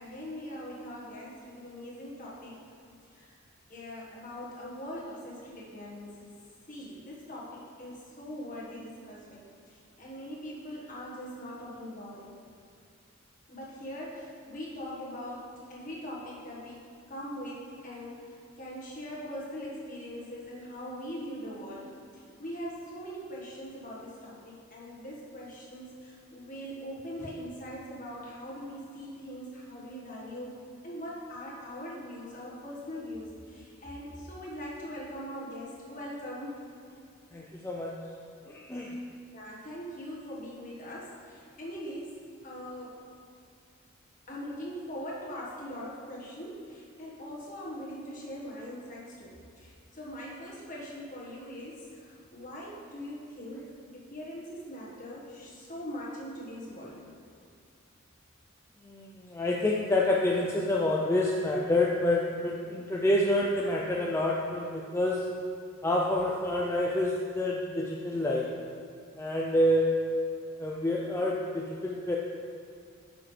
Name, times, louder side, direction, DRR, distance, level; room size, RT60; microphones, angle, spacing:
voice 1, 0.0-2.6 3.1-3.3 3.7-6.3 6.7-12.3 13.5-16.8 17.1-36.6 39.3-42.9 44.3-57.0, equal, 40° left, -5 dB, 1.5 m, -41 dB
voice 2, 37.3-38.0 38.4-39.0 58.8-65.3 65.8-68.6 69.2-70.2 70.6-72.2, left 1 dB, 10° left, -3 dB, 0.4 m, -28 dB
9.1 x 6.1 x 3.3 m, 2.3 s
head